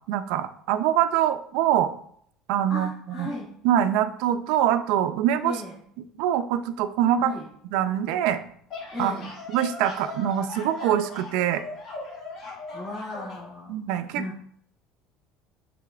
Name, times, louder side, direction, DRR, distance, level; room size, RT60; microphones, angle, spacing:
voice 1, 0.1-1.9 2.5-2.9 3.2-3.3 3.6-5.5 6.2-7.3 7.7-8.4 9.0-9.1 9.5-11.6 13.7-14.4, right 10 dB, 70° right, 10 dB, 0.4 m, -24 dB
voice 2, 2.7-3.5 5.4-5.8 7.2-7.5 8.9-9.3 12.7-13.8 14.1-14.3, left 1 dB, 20° left, -6 dB, 1.0 m, -35 dB
sound 1, 8.7-13.5, left 3 dB, 40° left, 1.3 m, -39 dB
6.6 x 3.3 x 2.3 m, 0.63 s
cardioid pair, 170°, 0 cm